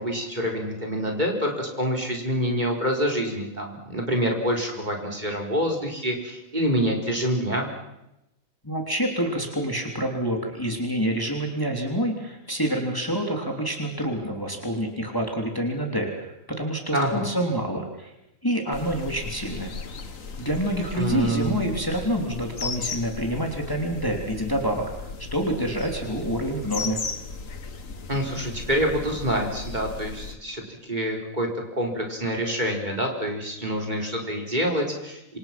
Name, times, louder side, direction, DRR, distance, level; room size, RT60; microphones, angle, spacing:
voice 1, 0.0-7.7 16.9-17.3 20.9-21.5 28.1-35.4, equal, 30° right, 1 dB, 4.5 m, -26 dB
voice 2, 8.6-18.1 18.4-19.7 20.4-24.9 25.3-27.0, right 1 dB, 15° left, 2 dB, 3.2 m, -27 dB
sound 1, 18.7-30.3, left 4 dB, 70° left, 2.0 m, -36 dB
27.0 x 26.0 x 6.0 m, 0.90 s
omnidirectional pair, 1.4 m